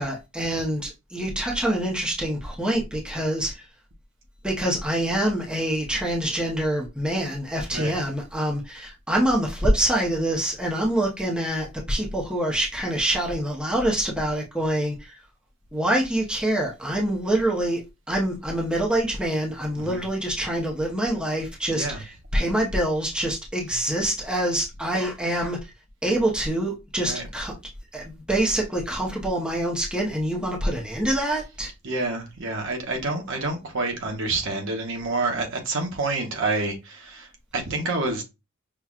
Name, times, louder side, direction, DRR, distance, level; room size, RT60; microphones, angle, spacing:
voice 1, 0.0-3.6 4.4-15.2 15.7-17.8 18.1-25.6 26.0-27.5 27.9-31.7, right 1 dB, 5° right, 0.7 m, -25 dB
voice 2, 31.8-38.2, right 3 dB, 60° right, 0.9 m, -28 dB
5.6 x 2.3 x 2.4 m
head